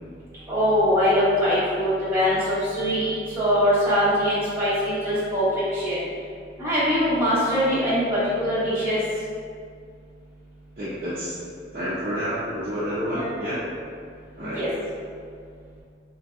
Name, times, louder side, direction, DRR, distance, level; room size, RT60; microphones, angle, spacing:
voice 1, 0.5-6.1 6.6-9.3 13.1-13.4 14.4-14.7, equal, 15° right, -12 dB, 0.8 m, -22 dB
voice 2, 10.8-11.4 11.7-13.6 14.4-14.7, equal, 45° right, -13 dB, 0.7 m, -29 dB
3.8 x 2.7 x 2.3 m, 2.2 s
head